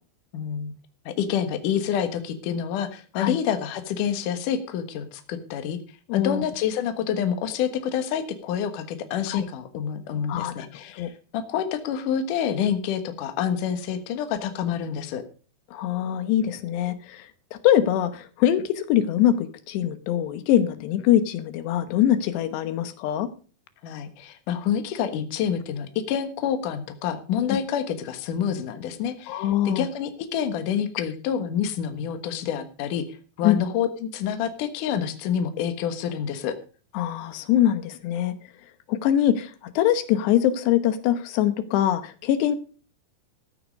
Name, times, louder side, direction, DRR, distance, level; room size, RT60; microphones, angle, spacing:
voice 1, 0.3-0.7 1.1-5.8 6.1-15.2 23.8-36.6, left 8 dB, 60° left, 8 dB, 2.6 m, -28 dB
voice 2, 6.1-6.4 9.3-9.4 10.3-10.7 11.0-11.1 15.7-23.3 29.3-29.9 33.4-33.6 36.9-38.3 38.9-42.6, left 11 dB, 85° left, 12 dB, 3.2 m, -23 dB
13.5 x 9.5 x 5.1 m, 0.38 s
omnidirectional pair, 4.8 m